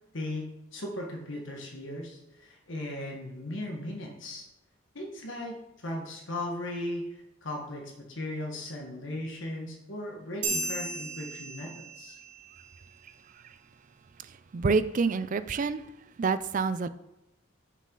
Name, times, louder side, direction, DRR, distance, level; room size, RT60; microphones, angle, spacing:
voice 1, 0.1-0.5 0.7-4.5 4.9-7.0 7.4-12.2, left 1 dB, 70° left, 0 dB, 1.4 m, -37 dB
sound 1, 10.4-12.3, right 2 dB, 60° right, 1.4 m, -34 dB
voice 2, 14.5-15.8 16.2-16.9, right 4 dB, 40° right, 13 dB, 0.4 m, -27 dB
7.6 x 6.4 x 3.9 m, 0.92 s
head